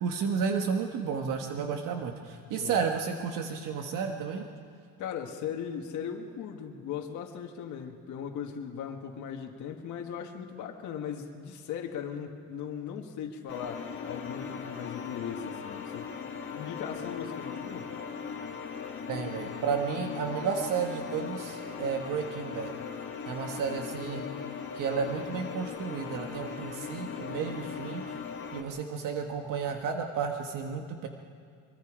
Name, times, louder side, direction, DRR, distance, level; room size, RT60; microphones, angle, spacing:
voice 1, 0.0-4.5 19.1-22.7 23.3-24.3 24.7-28.2 28.5-31.1, right 6 dB, 60° right, 4 dB, 1.4 m, -32 dB
voice 2, 5.0-16.1 16.5-17.9, left 8 dB, 55° left, 2 dB, 1.8 m, -38 dB
sound 1, 13.5-28.6, left 6 dB, 35° left, 1.9 m, -39 dB
23.5 x 23.0 x 5.0 m, 2.2 s
cardioid pair, 155°, 36 cm